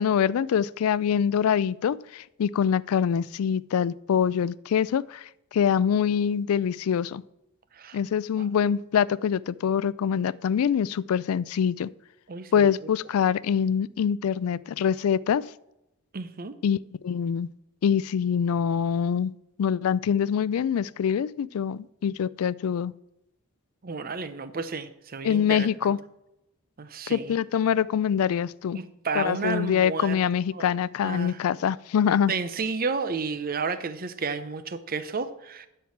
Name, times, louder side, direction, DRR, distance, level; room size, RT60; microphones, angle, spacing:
voice 1, 0.0-7.2 7.9-11.9 12.5-15.5 16.6-16.8 17.0-17.5 17.8-19.3 19.6-22.9 25.2-26.0 27.1-28.8 29.2-32.3, left 8 dB, 80° left, 20 dB, 0.3 m, -24 dB
voice 2, 12.3-12.7 16.1-16.5 23.8-25.9 26.8-27.4 28.7-30.2 30.5-30.7 31.0-31.4 32.3-35.7, right 4 dB, 45° right, 12 dB, 0.6 m, -32 dB
10.5 x 4.6 x 7.2 m, 0.87 s
head